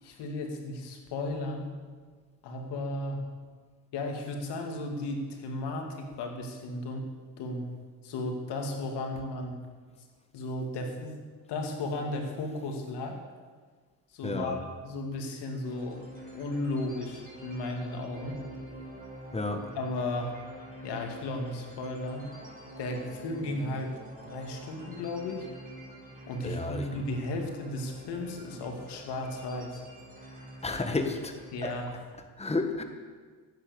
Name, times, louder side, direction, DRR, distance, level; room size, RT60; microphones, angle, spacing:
voice 1, 0.0-1.7 2.4-3.2 3.9-7.0 7.4-7.7 8.0-9.6 10.3-11.2 11.5-13.2 14.1-16.0 16.3-18.4 19.8-20.3 20.8-22.3 22.8-23.9 24.2-25.5 26.3-29.8 31.5-31.9, left 2 dB, 85° left, 3 dB, 2.5 m, -34 dB
voice 2, 14.2-14.5 19.3-19.7 26.4-26.8 30.6-31.3 31.6-31.7 32.4-32.8, left 3 dB, 15° left, 5 dB, 1.6 m, -31 dB
sound 1, 15.6-31.8, right 1 dB, 20° right, 4.7 m, -47 dB
16.0 x 9.2 x 7.2 m, 1.5 s
cardioid pair, 90°, 40 cm